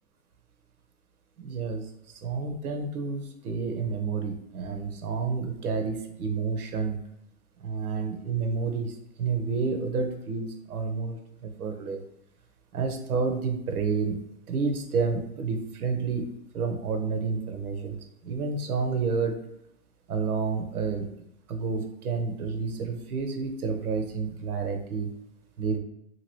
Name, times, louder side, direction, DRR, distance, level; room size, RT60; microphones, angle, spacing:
voice 1, 1.4-7.0 7.6-12.0 12.7-14.2 14.5-18.0 18.2-19.4 20.1-21.1 21.5-25.1 25.6-25.8, right 5 dB, 80° right, 5 dB, 0.8 m, -30 dB
2.9 x 2.6 x 3.0 m, 0.81 s
hypercardioid pair, 160°, 43 cm